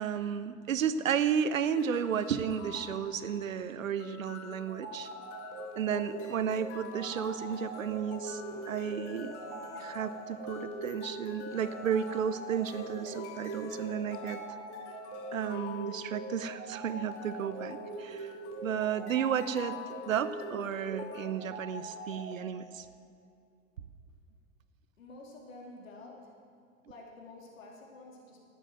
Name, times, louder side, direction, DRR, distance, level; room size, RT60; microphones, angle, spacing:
voice 1, 0.0-5.1 5.8-9.3 9.8-14.4 15.3-18.3 18.6-19.8 20.1-22.9, right 8 dB, 80° right, 14 dB, 0.9 m, -33 dB
sound 1, 1.5-21.3, left 7 dB, 60° left, 1.5 m, -48 dB
sound 2, 4.8-22.4, right 3 dB, 55° right, 3.5 m, -42 dB
Human voice, 5.9-7.1 7.5-10.7 10.9-11.2 11.5-13.9, left 2 dB, 10° left, 1.6 m, -54 dB
voice 2, 25.0-26.3 26.9-28.5, left 2 dB, 75° left, 0 dB, 3.5 m, -50 dB
12.0 x 11.0 x 7.6 m, 2.4 s
hypercardioid pair, 90°, 40 cm